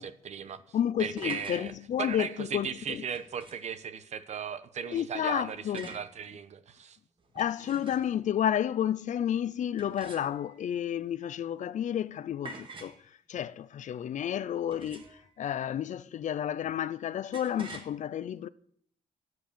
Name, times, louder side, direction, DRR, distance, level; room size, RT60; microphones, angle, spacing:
voice 1, 0.0-0.6 1.0-1.7 2.0-7.0, right 7 dB, 50° right, 1.0 m, -37 dB
voice 2, 0.7-3.0 4.9-6.0 7.3-12.9 13.3-15.0 15.4-18.5, left 10 dB, 60° left, 0.5 m, -31 dB
sound 1, 0.9-1.6 3.1-3.7 5.7-6.1 7.2-8.2 9.8-10.6 12.4-13.0 14.7-15.3 17.3-17.9, right 3 dB, 35° right, 1.6 m, -46 dB
13.0 x 9.5 x 6.8 m
wide cardioid pair, 170°, 15 cm